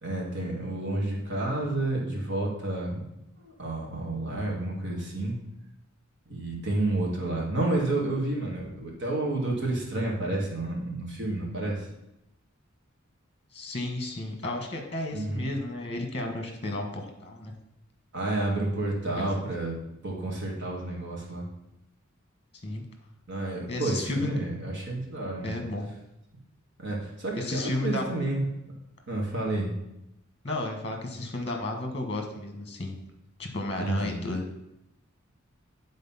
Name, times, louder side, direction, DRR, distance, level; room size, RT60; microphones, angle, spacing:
voice 1, 0.0-3.0 3.4-5.4 6.3-11.9 15.1-15.5 18.1-19.8 20.0-21.5 23.3-25.6 26.8-28.5 29.1-29.8 33.8-34.2, right 2 dB, 60° right, -2 dB, 2.2 m, -30 dB
voice 2, 13.5-17.5 19.2-19.4 22.6-22.8 23.7-24.3 25.4-25.9 27.4-28.1 30.4-33.0 33.4-34.4, left 2 dB, 30° left, 4 dB, 1.3 m, -32 dB
9.3 x 4.0 x 5.6 m, 0.87 s
head